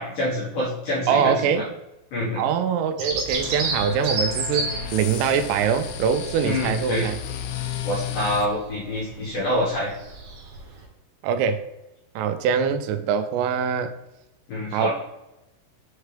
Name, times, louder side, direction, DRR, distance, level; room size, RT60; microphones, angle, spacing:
voice 1, 0.0-1.6 2.1-2.4 6.4-7.1 7.8-9.9 14.5-14.9, left 1 dB, 60° left, -8 dB, 2.4 m, -26 dB
voice 2, 1.1-1.7 2.4-7.2 11.2-11.6 12.2-13.9 14.7-14.9, right 7 dB, 85° right, 9 dB, 3.1 m, -23 dB
Bird vocalization bird call bird song, 3.0-10.8, right 3 dB, 65° right, 2.5 m, -32 dB
sound 1, 3.3-8.5, left 8 dB, 85° left, 2.6 m, -33 dB
7.3 x 4.5 x 3.3 m, 0.94 s
omnidirectional pair, 5.7 m